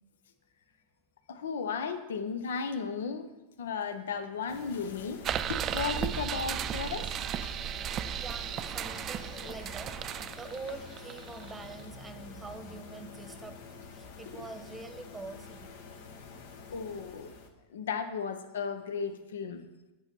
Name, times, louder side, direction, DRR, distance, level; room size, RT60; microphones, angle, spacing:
voice 1, 1.3-3.3 3.6-7.1 14.3-14.5 16.7-17.3 17.7-19.6, left 6 dB, 85° left, 9 dB, 0.7 m, -35 dB
sound 1, 4.5-17.5, left 5 dB, 70° left, 1.1 m, -48 dB
sound 2, 5.2-11.8, right 10 dB, 35° right, 0.4 m, -35 dB
voice 2, 8.2-13.6 13.9-15.7, right 3 dB, 15° right, 7 dB, 0.9 m, -44 dB
8.1 x 5.5 x 5.2 m, 1.1 s
hypercardioid pair, 110°, 0 cm